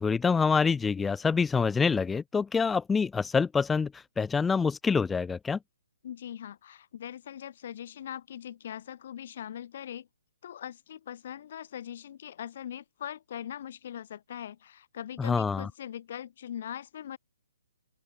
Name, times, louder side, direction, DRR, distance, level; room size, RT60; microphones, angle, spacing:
voice 1, 0.0-5.6 15.2-15.7, left 5 dB, 10° left, 0.3 m, -26 dB
voice 2, 6.0-10.1 10.4-17.2, left 10 dB, 45° left, 6.2 m, -41 dB
open air
figure-of-eight pair, 130°, 0 cm